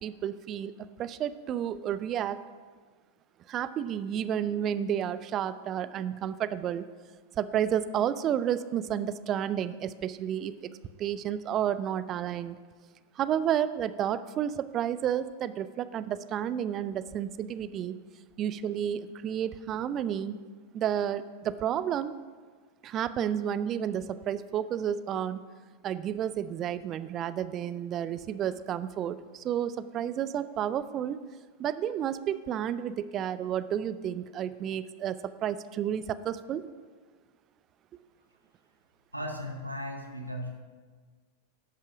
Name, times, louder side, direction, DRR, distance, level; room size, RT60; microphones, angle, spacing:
voice 1, 0.0-2.4 3.5-6.9 7.4-10.7 11.0-12.6 13.2-18.0 18.4-20.4 20.7-22.2 22.8-25.4 25.8-31.2 31.6-36.6, right 9 dB, 30° right, 14 dB, 0.4 m, -31 dB
voice 2, 39.1-40.6, left 1 dB, 85° right, 3 dB, 0.9 m, -36 dB
11.0 x 5.6 x 6.0 m, 1.5 s
figure-of-eight pair, 90°, 0 cm